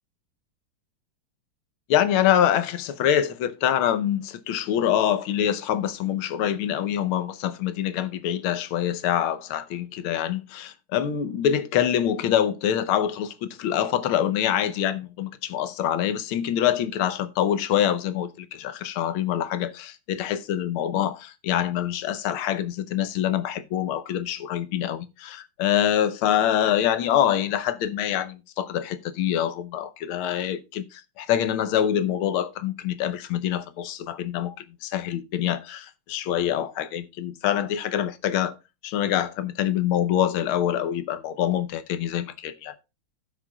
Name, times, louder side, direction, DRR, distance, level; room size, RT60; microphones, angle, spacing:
voice 1, 1.9-38.5 38.8-42.7, left 10 dB, 85° left, 1.6 m, -25 dB
16.0 x 5.9 x 2.2 m
omnidirectional pair, 2.3 m